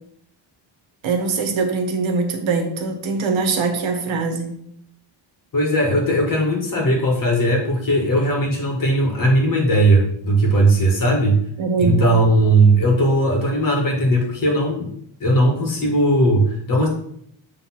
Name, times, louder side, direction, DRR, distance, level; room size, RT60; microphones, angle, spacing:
voice 1, 1.0-4.6 11.6-12.0, right 4 dB, 70° right, 5 dB, 1.4 m, -22 dB
voice 2, 5.5-11.4 11.8-14.9 15.2-16.9, right 1 dB, 40° left, 1 dB, 1.9 m, -18 dB
8.0 x 3.7 x 6.0 m, 0.70 s
wide cardioid pair, 175°, 49 cm